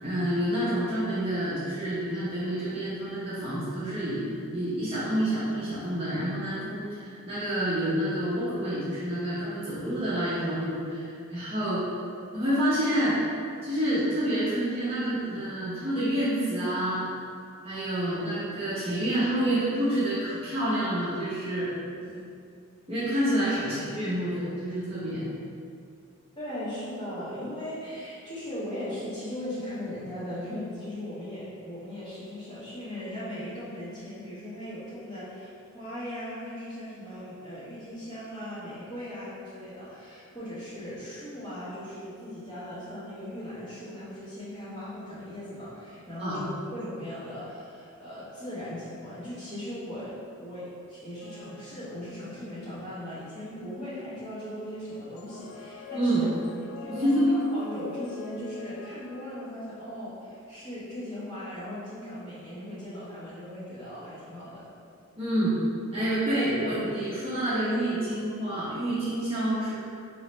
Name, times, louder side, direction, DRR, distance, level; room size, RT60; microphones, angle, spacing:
voice 1, 0.0-4.2 4.5-11.8 12.3-13.2 13.6-17.1 17.6-21.8 22.1-22.3 22.9-25.3 46.2-46.4 55.9-56.3 57.0-57.4 65.2-65.6 65.9-69.8, right 1 dB, 25° right, -10 dB, 0.7 m, -28 dB
voice 2, 26.3-56.3 56.8-64.7, left 1 dB, 20° left, -12 dB, 1.1 m, -38 dB
sound 1, 51.2-52.5 54.8-60.1, left 5 dB, 75° left, 0.3 m, -45 dB
3.9 x 2.9 x 3.1 m, 2.4 s
head